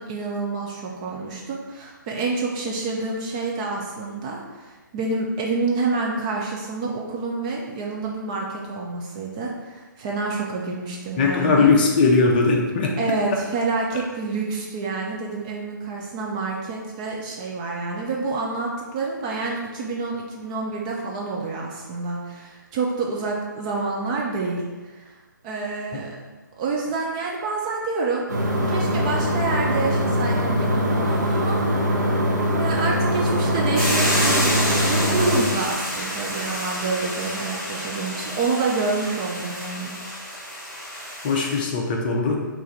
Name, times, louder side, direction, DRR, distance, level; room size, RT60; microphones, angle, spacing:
voice 1, 0.0-11.7 13.0-24.6 24.9-25.1 25.4-26.2 26.6-28.3 28.7-32.1 32.4-39.9, right 3 dB, 20° right, -2 dB, 0.4 m, -28 dB
voice 2, 11.2-12.9 41.2-42.4, left 4 dB, 25° left, 0 dB, 0.6 m, -19 dB
sound 1, 28.3-35.4, equal, 55° right, 0.9 m, -22 dB
Hiss / Boiling, 33.7-41.6, equal, ahead, 1.1 m, -28 dB
4.5 x 2.6 x 4.4 m, 1.3 s
figure-of-eight pair, 135°, 11 cm